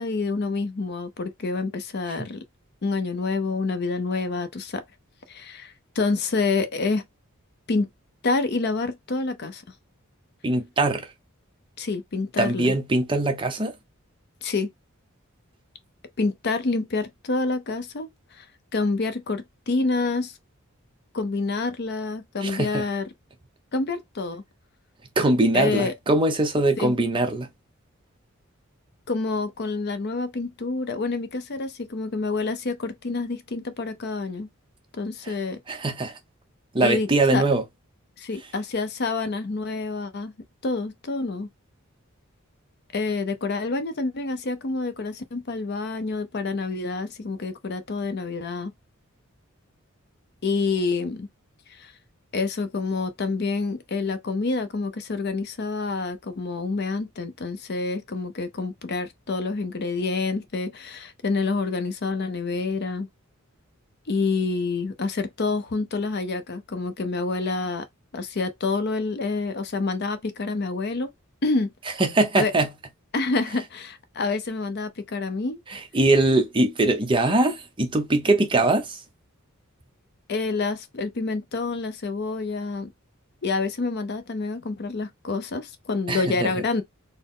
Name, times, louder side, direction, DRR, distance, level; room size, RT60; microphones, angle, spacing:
voice 1, 0.0-2.4 2.8-4.8 5.3-7.0 7.7-7.9 8.2-9.6 11.8-12.7 14.4-14.7 16.2-18.4 18.7-20.4 21.1-23.1 23.7-24.4 25.5-25.9 26.8-26.9 29.1-34.5 34.9-35.6 36.8-37.4 38.2-40.3 40.6-41.5 42.9-48.7 50.4-51.3 51.7-51.9 52.3-63.1 64.1-67.9 68.1-71.1 71.4-72.0 72.4-72.5 73.1-75.6 80.3-82.9 83.4-86.8, left 3 dB, 50° left, 0.6 m, -27 dB
voice 2, 10.4-11.1 12.4-13.7 22.4-22.8 25.2-27.5 35.2-35.3 35.7-36.2 36.7-37.6 72.0-72.7 75.7-79.0 86.1-86.5, right 2 dB, 25° right, 0.7 m, -22 dB
4.2 x 2.1 x 3.6 m
head